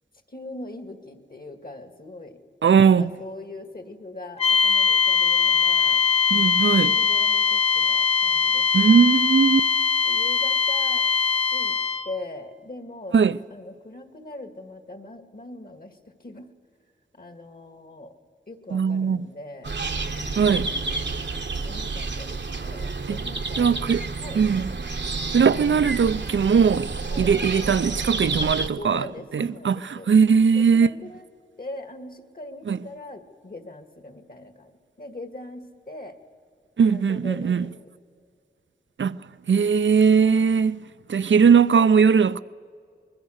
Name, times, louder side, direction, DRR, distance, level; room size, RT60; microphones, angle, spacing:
voice 1, 0.3-2.4 2.8-6.0 6.6-8.7 10.0-11.1 11.5-11.8 12.1-13.2 13.5-15.9 16.2-16.5 17.2-18.1 18.5-19.7 21.7-23.7 24.2-24.7 27.0-27.3 28.4-28.5 28.8-30.1 30.5-31.3 31.6-34.7 35.0-36.1 36.8-37.7, left 2 dB, 50° left, 2.0 m, -41 dB
voice 2, 2.6-3.1 6.3-7.0 8.7-9.7 13.1-13.4 18.7-19.3 20.4-20.7 23.1-23.2 23.6-24.0 24.3-24.7 25.3-31.0 32.7-32.8 36.8-37.7 39.0-39.2 39.5-40.8 41.1-42.4, right 6 dB, 85° right, 0.5 m, -19 dB
sound 1, 4.4-12.1, left 5 dB, 30° left, 1.0 m, -21 dB
sound 2, 19.6-28.7, right 3 dB, 70° right, 1.0 m, -30 dB
25.0 x 21.5 x 6.5 m
wide cardioid pair, 75°, 19 cm